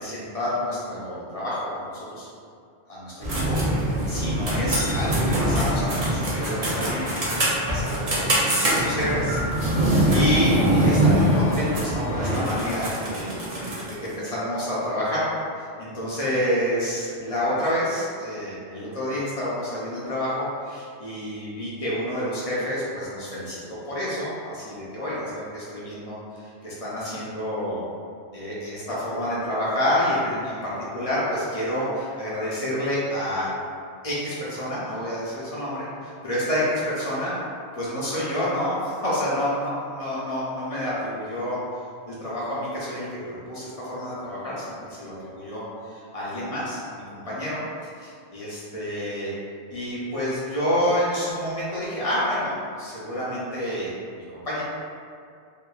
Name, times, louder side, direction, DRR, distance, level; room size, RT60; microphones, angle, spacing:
voice 1, 0.0-2.3 2.9-7.1 7.7-15.2 15.8-23.6 23.8-27.8 28.3-33.5 34.0-37.3 37.7-41.6 42.1-47.6 48.0-49.3 49.7-54.6, equal, 50° left, -8 dB, 0.4 m, -29 dB
sound 1, 3.2-14.1, right 1 dB, 50° right, 0.5 m, -23 dB
2.9 x 2.1 x 2.2 m, 2.3 s
omnidirectional pair, 1.2 m